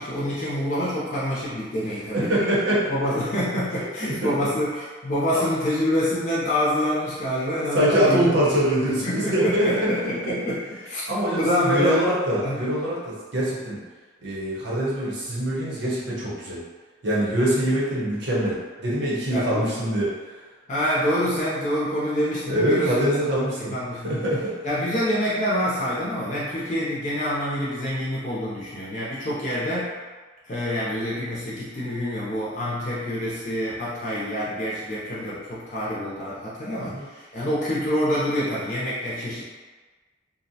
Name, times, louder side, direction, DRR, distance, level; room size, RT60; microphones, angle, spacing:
voice 1, 0.0-2.5 2.9-8.3 8.8-10.6 10.9-11.0 11.3-12.0 12.4-12.6 19.2-19.7 20.7-23.2 23.6-24.2 24.6-29.9 30.5-39.4, equal, 40° left, -7 dB, 0.5 m, -26 dB
voice 2, 2.1-3.1 4.0-4.2 5.3-5.4 7.7-10.1 11.1-13.8 14.2-16.6 17.0-20.1 22.5-23.7 24.0-24.6 36.8-37.0, right 1 dB, 60° right, -7 dB, 0.8 m, -24 dB
2.6 x 2.0 x 2.6 m, 1.4 s
head